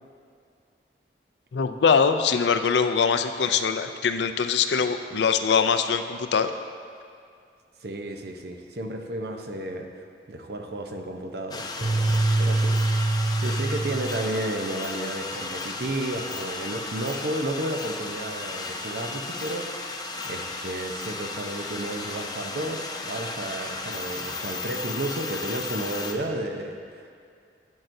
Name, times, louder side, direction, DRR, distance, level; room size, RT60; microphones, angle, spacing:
voice 1, 1.5-6.5, left 6 dB, 85° left, 9 dB, 0.4 m, -22 dB
voice 2, 7.8-13.0 13.4-20.0 20.2-27.1, right 1 dB, 70° right, 4 dB, 0.7 m, -32 dB
sound 1, 11.5-26.1, left 3 dB, 20° left, 0.5 m, -34 dB
sound 2, 11.8-14.3, right 2 dB, 30° right, 0.5 m, -24 dB
12.0 x 7.6 x 2.7 m, 2.3 s
head